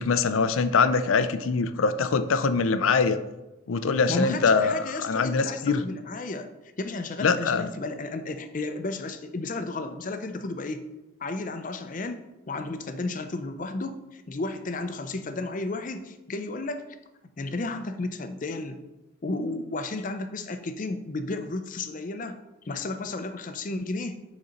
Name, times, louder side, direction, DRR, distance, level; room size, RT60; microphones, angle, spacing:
voice 1, 0.0-3.2 3.7-5.8 7.2-7.7, left 4 dB, 90° left, 11 dB, 0.5 m, -23 dB
voice 2, 4.1-6.5 6.8-10.8 11.2-16.9 17.4-18.8 19.2-22.4 22.7-24.2, left 2 dB, 40° left, 9 dB, 0.5 m, -33 dB
6.7 x 4.2 x 5.1 m, 1.0 s
head